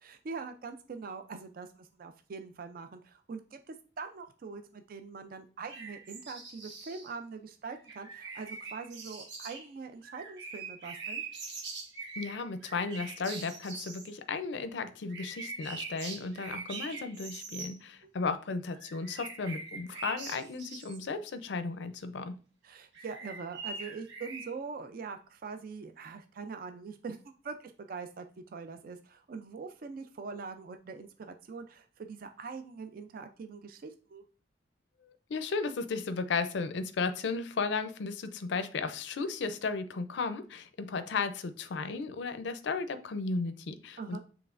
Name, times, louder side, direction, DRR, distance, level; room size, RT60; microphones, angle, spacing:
voice 1, 0.0-11.2 18.0-18.1 22.6-27.2 27.4-34.2 44.0-44.2, right 5 dB, 50° right, 8 dB, 0.4 m, -43 dB
sound 1, 5.7-7.1 7.7-9.7 10.0-14.1 15.1-17.7 18.7-21.0 22.9-24.5, right 4 dB, 70° right, 1.2 m, -43 dB
voice 2, 12.2-22.3 35.3-44.2, left 4 dB, 70° left, 10 dB, 0.4 m, -35 dB
6.9 x 3.1 x 2.4 m, 0.38 s
head